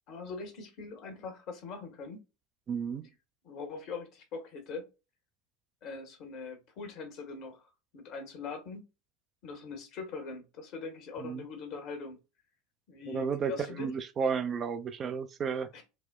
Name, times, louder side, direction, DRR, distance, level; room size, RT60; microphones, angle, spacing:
voice 1, 0.1-2.2 3.4-4.9 5.8-7.6 7.9-8.8 9.4-12.2 12.9-13.9 15.7-15.8, left 4 dB, 50° left, 1.1 m, -42 dB
voice 2, 2.7-3.1 11.2-11.4 13.1-15.7, right 6 dB, 35° right, 0.4 m, -32 dB
4.1 x 2.1 x 2.3 m
figure-of-eight pair, 75°, 0 cm